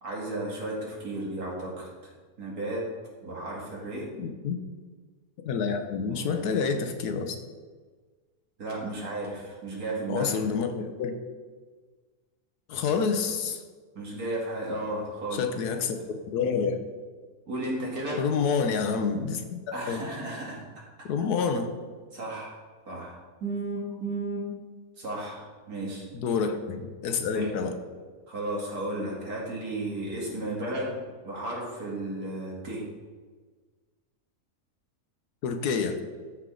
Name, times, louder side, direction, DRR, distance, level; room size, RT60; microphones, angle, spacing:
voice 1, 0.0-2.1 2.4-2.8 3.2-4.1 6.1-6.4 8.6-10.4 14.0-15.4 17.5-18.2 19.7-20.6 22.1-22.6 22.9-24.5 25.0-26.1 27.3-27.5 28.3-31.0 31.2-32.8, right 1 dB, 65° right, -3 dB, 2.5 m, -34 dB
voice 2, 4.2-4.6 5.4-7.4 10.1-11.1 12.7-13.6 15.3-16.0 16.3-16.8 18.2-20.0 21.1-21.7 26.1-27.7 35.4-36.0, left 5 dB, 80° left, 6 dB, 1.3 m, -28 dB
13.0 x 4.8 x 3.8 m, 1.4 s
omnidirectional pair, 1.7 m